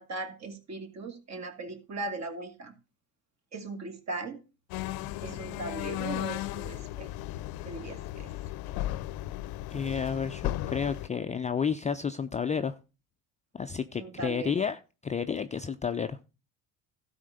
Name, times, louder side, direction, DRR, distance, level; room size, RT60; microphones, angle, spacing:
voice 1, 0.0-2.8 3.5-4.4 5.2-7.1 7.5-8.3 14.0-14.5, right 3 dB, 40° right, 6 dB, 2.4 m, -38 dB
sound 1, 4.7-11.1, left 15 dB, 60° left, 0.7 m, -35 dB
voice 2, 9.7-12.7 13.5-16.2, left 6 dB, 20° left, 9 dB, 0.4 m, -31 dB
12.5 x 4.3 x 6.6 m, 0.32 s
supercardioid pair, 90°, 41 cm